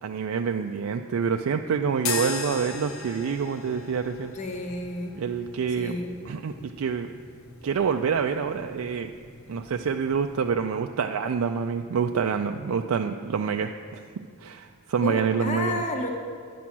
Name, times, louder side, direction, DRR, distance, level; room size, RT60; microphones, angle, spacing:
voice 1, 0.0-4.3 5.2-6.0 6.3-7.1 7.6-9.1 9.5-14.0 14.4-15.8, right 6 dB, 75° right, 5 dB, 0.4 m, -27 dB
sound 1, 2.0-10.5, left 4 dB, 70° left, 0.9 m, -39 dB
voice 2, 4.3-5.2 5.7-6.1 15.0-16.1, left 2 dB, 30° left, 1 dB, 0.9 m, -31 dB
10.0 x 6.0 x 8.5 m, 2.2 s
head